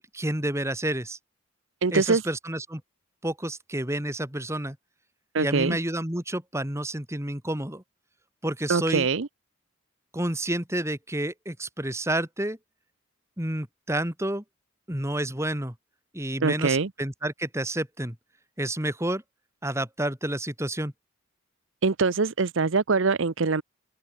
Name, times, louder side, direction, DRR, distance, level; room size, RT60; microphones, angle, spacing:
voice 1, 0.1-1.2 1.9-2.8 3.2-4.8 5.4-7.8 8.4-9.1 10.1-12.6 13.4-14.4 14.9-15.7 16.1-18.2 18.6-19.2 19.6-20.9, right 1 dB, 15° right, 2.8 m, -29 dB
voice 2, 1.8-2.2 5.3-5.8 8.7-9.3 16.4-16.9 21.8-23.6, right 4 dB, 65° right, 0.7 m, -23 dB
open air
head